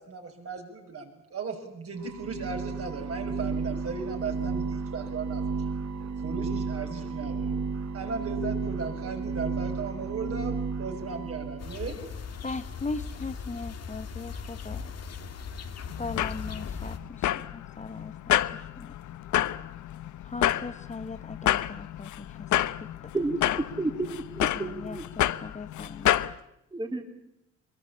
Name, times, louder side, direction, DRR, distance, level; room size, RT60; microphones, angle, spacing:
voice 1, 0.0-5.4 6.2-7.6 7.9-12.0, right 4 dB, 50° right, 2 dB, 6.5 m, -36 dB
sound 1, 2.0-11.7, right 4 dB, 65° right, 2.6 m, -33 dB
sound 2, 11.6-17.0, left 6 dB, 55° left, 2.1 m, -38 dB
voice 2, 12.4-15.2 16.0-18.4 18.8-18.9 20.2-22.5 22.8-22.9 24.5-26.2, left 3 dB, 25° left, 10 dB, 1.1 m, -39 dB
sound 3, 15.9-26.3, left 13 dB, 75° left, 0.9 m, -29 dB
voice 3, 23.8-25.0 26.7-27.0, right 2 dB, 15° right, 4 dB, 3.1 m, -31 dB
23.5 x 22.5 x 8.7 m, 0.83 s
cardioid pair, 90°, 30 cm